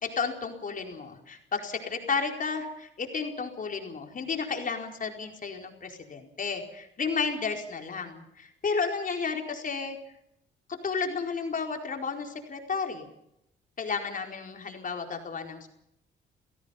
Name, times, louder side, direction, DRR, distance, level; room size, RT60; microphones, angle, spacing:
voice 1, 0.0-10.0 10.7-13.1 13.8-15.7, left 5 dB, 45° left, 3 dB, 4.6 m, -32 dB
29.5 x 17.0 x 5.7 m, 0.80 s
cardioid pair, 90°, 20 cm